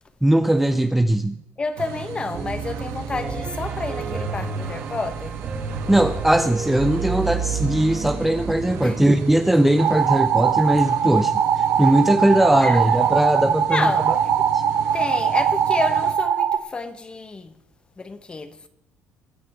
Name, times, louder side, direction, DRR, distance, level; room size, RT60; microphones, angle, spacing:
voice 1, 0.2-1.4 5.9-13.9 14.5-14.6, right 1 dB, 5° right, 0.5 m, -19 dB
voice 2, 1.6-5.4 8.8-9.0 12.6-12.8 13.7-14.3 14.9-17.6 18.0-18.6, left 3 dB, 20° left, 1.1 m, -30 dB
sound 1, 1.8-16.1, right 8 dB, 85° right, 1.6 m, -36 dB
Piano, 2.3-9.4, right 5 dB, 35° right, 3.3 m, -30 dB
sound 2, 9.8-16.6, right 8 dB, 55° right, 0.9 m, -21 dB
23.5 x 9.4 x 3.6 m
cardioid pair, 150°, 5 cm